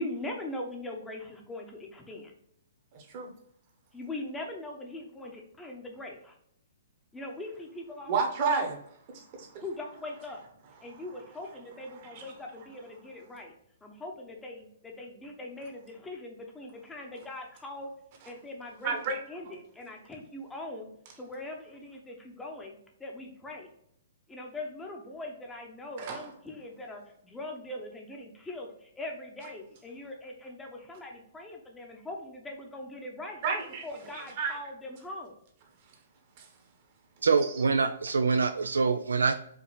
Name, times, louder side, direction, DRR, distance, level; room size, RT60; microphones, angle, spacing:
voice 1, 0.0-2.3 3.9-6.3 7.1-8.2 9.6-10.4 10.8-13.5 13.8-17.9 18.3-19.0 19.3-20.9 21.2-23.7 24.3-33.4 33.8-35.3, left 2 dB, 10° left, 1 dB, 0.8 m, -41 dB
voice 2, 2.9-3.3 8.1-8.8 9.1-9.6 12.1-12.2 18.8-19.2 19.4-19.5 26.0-26.2 33.4-33.8 34.4-34.5 36.4-36.5, right 5 dB, 45° right, 2 dB, 1.1 m, -30 dB
voice 3, 37.2-39.3, right 4 dB, 80° right, 9 dB, 0.3 m, -25 dB
4.8 x 2.9 x 3.2 m, 0.70 s
figure-of-eight pair, 125°, 0 cm